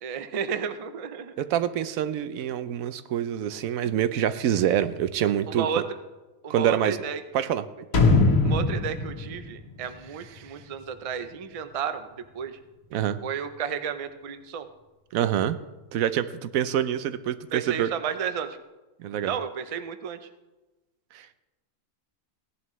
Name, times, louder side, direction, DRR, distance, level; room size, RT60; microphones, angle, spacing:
voice 1, 0.0-1.3 5.5-5.9 6.4-7.2 8.4-12.1 12.3-12.6 13.2-14.7 17.5-18.6 19.2-20.3, right 7 dB, 45° right, 10 dB, 0.5 m, -32 dB
voice 2, 1.4-5.7 6.5-7.0 7.3-7.6 12.9-13.2 15.1-15.6 15.9-17.9 19.0-19.3 21.1-21.4, right 10 dB, 90° right, 13 dB, 1.0 m, -26 dB
sound 1, 7.9-10.7 11.1-11.2, left 3 dB, 85° left, 1.6 m, -22 dB
17.0 x 11.0 x 3.1 m, 1.1 s
omnidirectional pair, 1.4 m